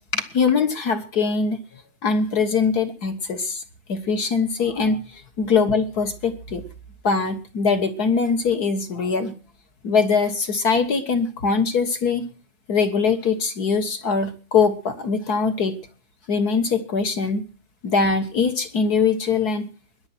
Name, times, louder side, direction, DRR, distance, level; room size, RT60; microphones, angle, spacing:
voice 1, 0.1-1.6 2.0-3.6 3.9-6.6 7.0-9.3 9.8-12.2 12.7-15.8 16.3-17.4 17.8-19.7, left 5 dB, 50° left, 9 dB, 1.2 m, -22 dB
22.0 x 11.0 x 4.3 m, 0.37 s
omnidirectional pair, 3.5 m